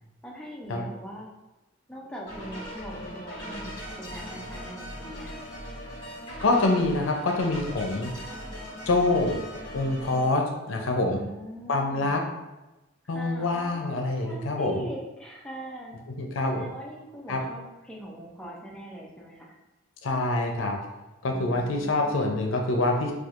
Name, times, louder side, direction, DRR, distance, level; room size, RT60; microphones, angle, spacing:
voice 1, 0.2-1.3 1.9-5.5 11.1-12.1 13.1-16.0 16.5-19.5 21.3-22.2, equal, 5° left, -3 dB, 0.5 m, -41 dB
sound 1, 2.3-10.3, equal, 25° left, 1.4 m, -39 dB
voice 2, 6.4-8.1 8.9-9.4 9.7-11.2 11.7-12.2 13.1-14.8 16.2-16.7 17.3-17.4 20.0-20.8 21.2-23.1, left 2 dB, 80° left, 2 dB, 0.5 m, -25 dB
4.3 x 2.4 x 2.4 m, 1.0 s
head